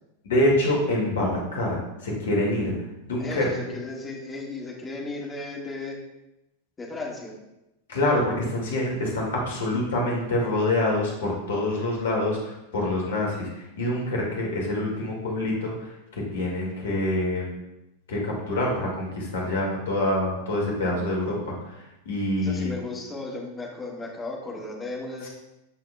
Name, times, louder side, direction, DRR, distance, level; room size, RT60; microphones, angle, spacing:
voice 1, 0.2-2.7 3.1-3.8 7.9-13.5 13.8-15.8 16.1-17.5 18.1-21.6 22.1-22.8, left 1 dB, 60° left, -2 dB, 2.0 m, -26 dB
voice 2, 3.2-6.0 6.8-7.3 22.4-25.3, left 2 dB, 15° left, -1 dB, 1.6 m, -35 dB
13.5 x 4.6 x 2.3 m, 0.92 s
figure-of-eight pair, 90°, 0 cm